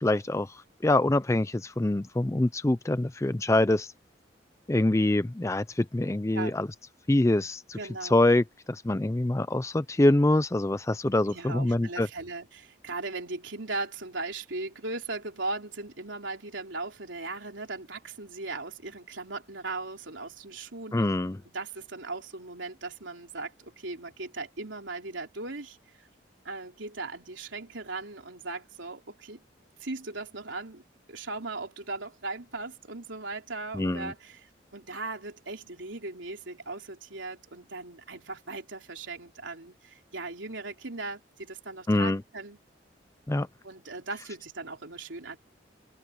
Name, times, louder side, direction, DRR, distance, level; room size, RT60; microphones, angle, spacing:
voice 1, 0.0-3.9 4.7-6.7 7.1-7.8 8.1-12.1 20.9-21.4 33.7-34.1 41.9-42.2 43.3-43.5, left 1 dB, 15° left, 0.4 m, -25 dB
voice 2, 7.7-8.2 11.3-21.0 21.5-25.8 26.4-29.4 29.8-30.8 31.1-42.6 43.6-45.4, right 3 dB, 90° right, 3.6 m, -38 dB
open air
head